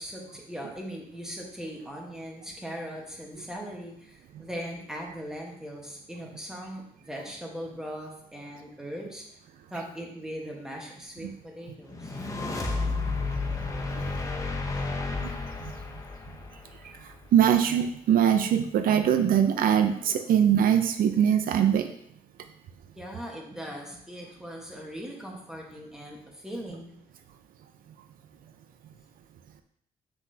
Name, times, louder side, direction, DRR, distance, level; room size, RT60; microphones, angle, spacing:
voice 1, 0.0-9.2 9.7-12.2 23.0-26.9, equal, 5° right, -1 dB, 1.3 m, -39 dB
sound 1, 11.9-17.2, left 3 dB, 20° left, 0.8 m, -32 dB
voice 2, 17.0-21.9, right 9 dB, 70° right, 8 dB, 0.5 m, -22 dB
7.7 x 6.0 x 2.8 m, 0.70 s
cardioid pair, 160°, 15 cm